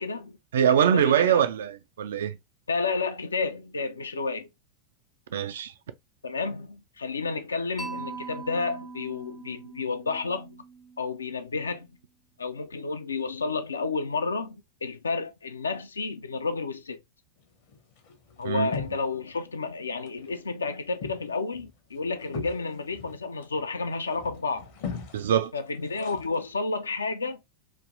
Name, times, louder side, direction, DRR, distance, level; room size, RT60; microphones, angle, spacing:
voice 1, 0.0-0.4 0.8-1.2 2.7-4.5 6.2-10.6 11.0-11.9 12.4-17.0 18.4-24.7 25.5-27.4, left 4 dB, 75° left, 0.4 m, -31 dB
voice 2, 0.5-2.4 5.3-5.7 18.4-18.7 25.1-25.5, right 9 dB, 60° right, 0.3 m, -23 dB
Mallet percussion, 7.8-11.8, right 4 dB, 10° left, 0.5 m, -42 dB
sound 1, 17.4-19.4 19.7-20.3 20.6-26.6, left 5 dB, 50° left, 0.7 m, -41 dB
3.2 x 2.5 x 2.4 m
figure-of-eight pair, 90°, 0 cm